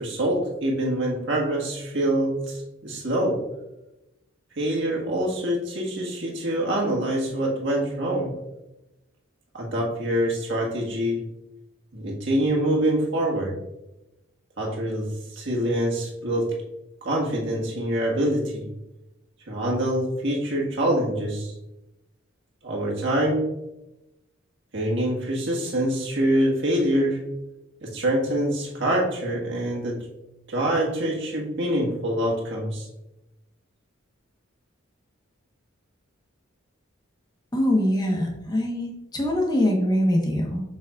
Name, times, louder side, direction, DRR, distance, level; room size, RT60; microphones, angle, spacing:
voice 1, 0.0-3.4 4.6-8.3 9.5-11.2 11.9-13.6 14.6-16.5 17.0-18.6 19.5-21.5 22.6-23.5 24.7-27.3 27.8-30.0 30.5-32.9, right 1 dB, 60° right, -2 dB, 1.7 m, -25 dB
voice 2, 37.5-40.6, left 1 dB, 20° left, 0 dB, 1.1 m, -23 dB
7.2 x 6.0 x 2.4 m, 0.94 s
head